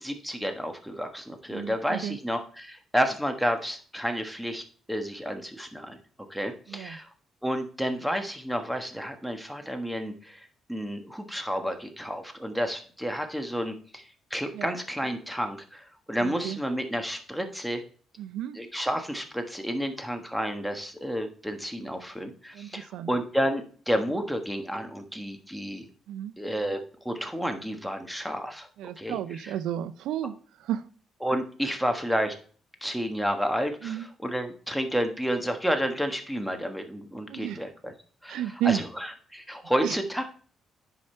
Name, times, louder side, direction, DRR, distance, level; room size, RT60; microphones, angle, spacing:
voice 1, 0.0-4.6 4.9-6.0 6.3-7.1 7.4-14.0 14.3-17.8 18.6-25.9 26.4-26.8 27.0-28.7 29.0-29.2 31.2-32.3 32.8-37.9 38.2-38.4 38.6-38.8 39.3-40.2, equal, ahead, 6 dB, 1.3 m, -30 dB
voice 2, 1.5-2.2 6.7-7.0 14.5-14.7 16.2-16.6 18.2-18.6 22.5-23.1 26.1-26.3 28.8-30.9 31.6-31.7 33.8-34.1 37.3-37.6 38.3-38.8 39.8-40.0, right 11 dB, 90° right, 15 dB, 0.4 m, -32 dB
9.8 x 5.0 x 4.3 m, 0.43 s
cardioid pair, 100°, 0 cm